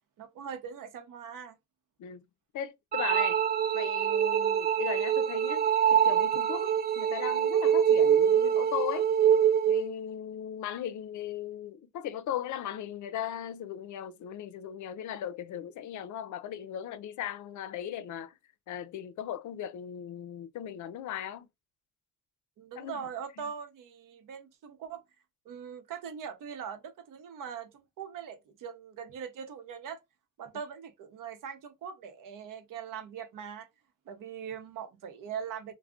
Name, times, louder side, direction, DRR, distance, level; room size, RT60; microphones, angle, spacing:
voice 1, 0.2-1.6 22.6-25.0 25.4-30.0 30.4-33.7 34.1-35.7, right 7 dB, 85° right, 0.7 m, -41 dB
voice 2, 2.5-3.4 3.7-9.1 9.7-18.4 18.7-21.5 22.8-23.0, left 10 dB, 70° left, 0.4 m, -38 dB
sound 1, 2.9-9.9, right 9 dB, 30° right, 0.4 m, -25 dB
2.3 x 2.1 x 3.5 m
cardioid pair, 110°, 31 cm